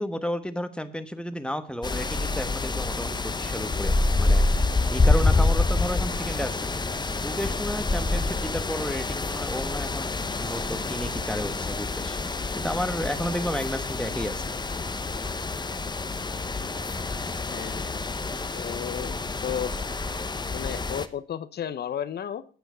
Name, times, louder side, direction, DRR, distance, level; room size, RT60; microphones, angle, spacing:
voice 1, 0.0-4.4 4.9-6.7 7.2-12.2 12.6-14.6, equal, 5° left, 9 dB, 1.2 m, -32 dB
sound 1, 1.8-21.1, left 3 dB, 20° left, 0.9 m, -27 dB
voice 2, 17.5-17.9 18.5-19.7 20.5-22.5, left 9 dB, 55° left, 13 dB, 0.9 m, -33 dB
9.3 x 7.9 x 5.6 m, 0.40 s
supercardioid pair, 60°, 20 cm